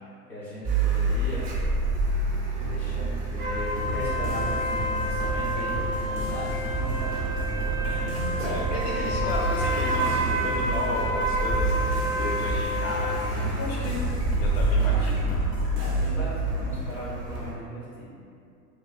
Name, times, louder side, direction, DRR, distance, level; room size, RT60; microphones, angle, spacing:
voice 1, 0.3-1.5 2.7-7.3 7.8-8.2 14.8-15.2 15.8-18.1, equal, 5° left, -11 dB, 0.3 m, -38 dB
Car, 0.6-17.5, right 2 dB, 40° right, 0.6 m, -29 dB
sound 1, 3.4-13.3, equal, 60° right, 1.2 m, -30 dB
sound 2, 3.6-16.1, right 1 dB, 75° right, 0.8 m, -33 dB
voice 2, 8.1-14.1 14.4-15.4, left 2 dB, 60° left, -3 dB, 0.5 m, -34 dB
2.5 x 2.4 x 2.3 m, 2.5 s
figure-of-eight pair, 90°, 47 cm